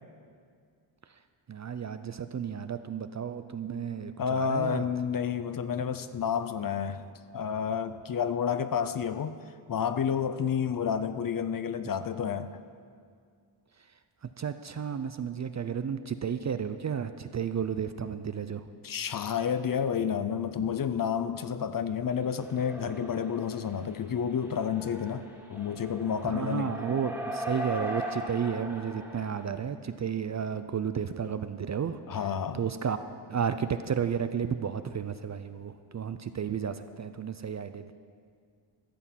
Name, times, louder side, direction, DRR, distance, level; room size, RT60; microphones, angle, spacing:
voice 1, 1.5-4.9 14.4-18.6 20.6-20.7 26.2-32.0 32.5-33.0 33.3-37.9, right 7 dB, 40° right, 10 dB, 0.4 m, -32 dB
voice 2, 4.2-7.0 7.3-9.4 9.7-12.6 18.8-25.2 25.5-26.7 32.1-32.6, left 7 dB, 45° left, 12 dB, 0.5 m, -30 dB
sound 1, 22.3-23.8 24.3-29.4, equal, 5° right, 1.6 m, -39 dB
14.0 x 8.1 x 7.3 m, 2.2 s
wide cardioid pair, 150°, 49 cm